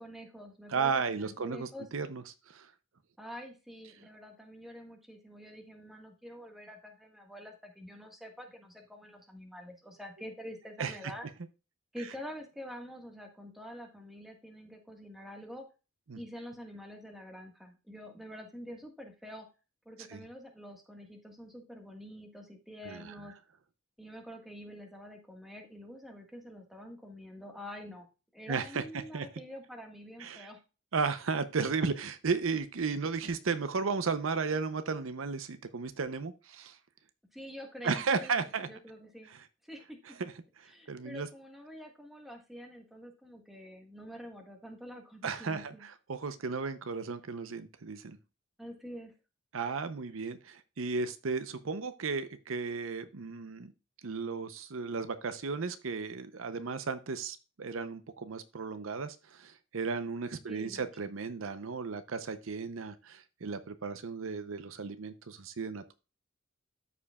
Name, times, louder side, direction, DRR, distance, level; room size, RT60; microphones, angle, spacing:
voice 1, 0.0-1.9 3.2-11.3 11.9-15.7 16.1-19.5 19.8-23.3 24.0-28.1 28.3-30.6 37.3-39.3 39.6-40.0 40.7-45.9 48.6-49.1 60.5-61.1, equal, ahead, 2 dB, 1.5 m, -47 dB
voice 2, 0.7-2.7 10.8-11.0 16.1-16.2 20.1-20.3 22.8-23.1 28.5-28.8 29.1-29.3 30.2-30.5 30.9-36.8 37.8-38.7 40.2-40.3 40.6-41.3 45.2-48.2 49.5-53.7 54.0-65.9, right 5 dB, 75° right, 11 dB, 0.7 m, -34 dB
13.5 x 5.0 x 2.3 m, 0.31 s
head